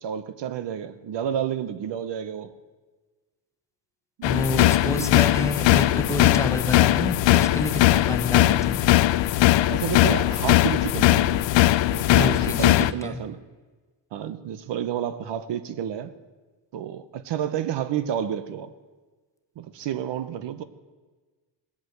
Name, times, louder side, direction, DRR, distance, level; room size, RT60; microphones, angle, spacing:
voice 1, 0.0-2.5 4.2-4.3 4.5-5.1 9.6-11.5 11.9-13.4 14.1-16.1 16.7-18.7 19.6-20.6, right 9 dB, 70° right, 13 dB, 0.9 m, -30 dB
sound 1, 4.2-12.9, left 15 dB, 85° left, 0.6 m, -20 dB
voice 2, 4.2-8.8 12.1-13.2, left 2 dB, 5° left, 6 dB, 1.0 m, -29 dB
19.0 x 8.6 x 7.8 m, 1.3 s
wide cardioid pair, 165°, 43 cm